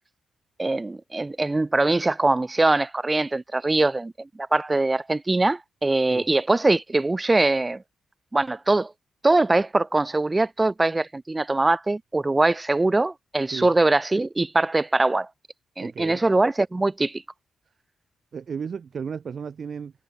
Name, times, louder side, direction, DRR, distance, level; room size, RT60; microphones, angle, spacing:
voice 1, 0.6-7.8 8.3-8.9 9.2-15.3 15.8-17.2, right 2 dB, 15° right, 1.8 m, -22 dB
voice 2, 15.8-16.2 18.3-19.9, right 6 dB, 40° right, 6.5 m, -34 dB
wide cardioid pair, 170°, 0 cm